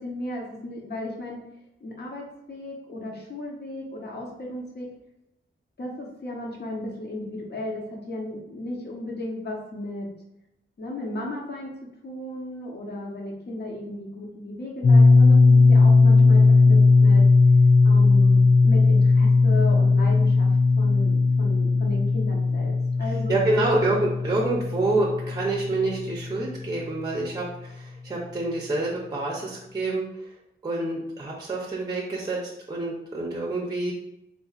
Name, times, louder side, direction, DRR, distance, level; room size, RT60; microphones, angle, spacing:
voice 1, 0.0-1.4 1.8-4.9 5.8-10.1 10.8-11.7 12.0-17.2 17.8-20.5 20.8-22.7 23.0-23.4, left 1 dB, 55° left, -2 dB, 0.9 m, -35 dB
sound 1, 14.8-26.6, left 3 dB, 30° left, 0.5 m, -18 dB
voice 2, 23.3-30.1 30.6-33.9, right 2 dB, 20° right, -3 dB, 0.6 m, -27 dB
3.9 x 2.7 x 2.4 m, 0.84 s
wide cardioid pair, 140°, 21 cm